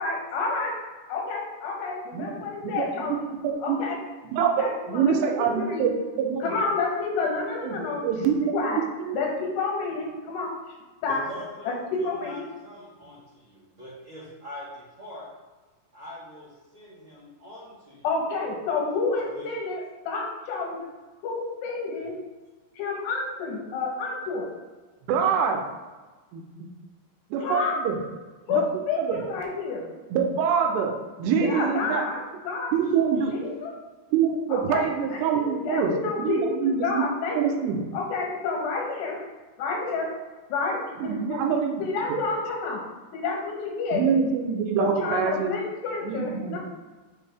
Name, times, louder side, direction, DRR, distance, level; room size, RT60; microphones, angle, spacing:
voice 1, 0.0-0.8 1.1-3.1 3.6-4.0 4.4-5.9 6.4-8.0 8.5-8.8 9.1-10.6 11.0-11.2 11.6-12.4 18.0-20.9 21.2-22.2 22.8-24.5 27.4-27.8 28.5-29.9 31.4-32.7 33.3-33.7 34.5-37.4 37.9-39.2 39.6-40.1 40.5-41.4 41.8-42.8 43.1-44.0 44.8-46.6, left 4 dB, 85° left, -1 dB, 3.4 m, -29 dB
voice 2, 2.1-3.8 4.3-6.5 7.6-9.2 25.1-25.7 26.3-26.4 27.3-28.0 28.5-28.7 29.0-29.2 30.1-32.1 32.7-33.3 34.1-35.9 36.2-37.9 41.0-41.8 42.1-42.2 43.9-45.5 46.0-46.6, right 7 dB, 85° right, 3 dB, 2.9 m, -25 dB
voice 3, 11.1-15.3 15.9-18.0 19.1-19.5 22.0-22.1 32.7-33.3, left 1 dB, 55° right, -9 dB, 1.5 m, -43 dB
9.2 x 3.4 x 3.5 m, 1.3 s
omnidirectional pair, 4.7 m